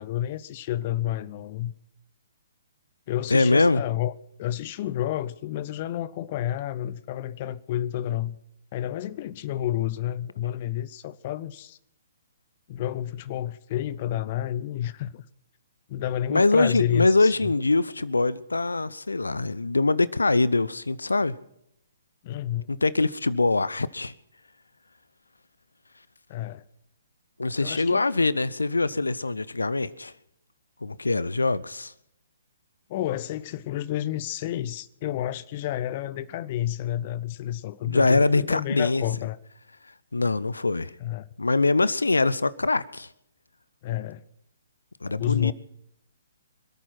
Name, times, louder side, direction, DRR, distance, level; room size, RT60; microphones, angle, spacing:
voice 1, 0.0-1.7 3.1-4.1 4.4-8.4 8.7-11.8 12.7-15.2 15.9-17.5 22.2-22.7 26.3-26.6 27.6-28.0 32.9-39.4 41.0-41.3 43.8-44.2 45.2-45.5, left 12 dB, 35° left, 0.7 m, -30 dB
voice 2, 3.3-3.8 16.3-21.4 22.7-24.1 27.4-30.1 30.8-31.9 37.8-39.0 40.1-40.9 41.4-43.1 45.0-45.5, left 3 dB, 75° left, 0.7 m, -23 dB
26.0 x 8.9 x 5.8 m
figure-of-eight pair, 125°, 0 cm